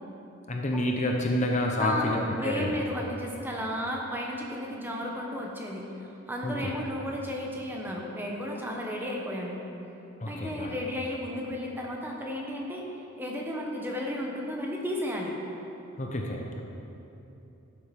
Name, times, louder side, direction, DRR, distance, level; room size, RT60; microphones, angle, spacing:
voice 1, 0.5-2.8 6.4-6.7 10.2-10.7 16.0-16.6, left 1 dB, 35° left, 1 dB, 0.8 m, -29 dB
voice 2, 1.8-9.6 10.2-12.9 13.2-15.4, left 1 dB, 10° right, -1 dB, 1.0 m, -33 dB
12.0 x 7.5 x 5.3 m, 3.0 s
head